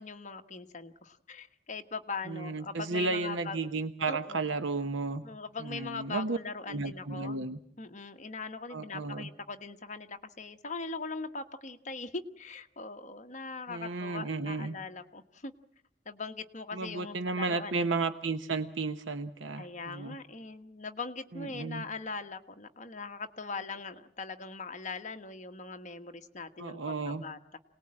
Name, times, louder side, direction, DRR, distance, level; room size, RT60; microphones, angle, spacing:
voice 1, 0.0-3.6 4.1-4.5 5.2-7.4 7.8-15.5 16.0-17.9 19.6-26.8 27.1-27.6, left 4 dB, 40° left, 7 dB, 1.3 m, -41 dB
voice 2, 2.3-5.2 5.6-6.4 6.7-7.6 8.7-9.3 13.7-14.7 16.7-20.2 21.3-21.8 26.6-27.2, right 3 dB, 75° right, 9 dB, 1.0 m, -33 dB
27.5 x 19.0 x 8.8 m, 0.72 s
head